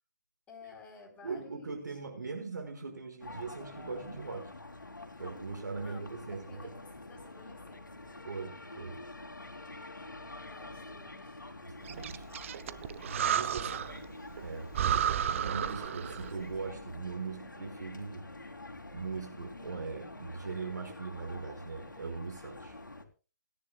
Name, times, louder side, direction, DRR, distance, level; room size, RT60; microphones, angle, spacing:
voice 1, 0.5-2.0 5.8-8.2 10.4-11.4 13.5-14.1, left 4 dB, 10° left, 1 dB, 3.9 m, -54 dB
voice 2, 1.2-4.5 5.2-6.7 8.2-9.0 10.0-10.1 11.7-12.3 12.7-12.8 13.0-13.7 14.4-14.7 15.3-18.2 18.9-22.8, right 4 dB, 70° right, 2 dB, 5.6 m, -40 dB
sound 1, 3.2-23.0, left 2 dB, 85° left, 2.8 m, -47 dB
Breathing, 11.9-14.0 14.4-14.5 14.7-16.4, right 9 dB, 40° right, 0.8 m, -32 dB
28.0 x 10.5 x 2.4 m, 0.33 s
figure-of-eight pair, 140°, 10 cm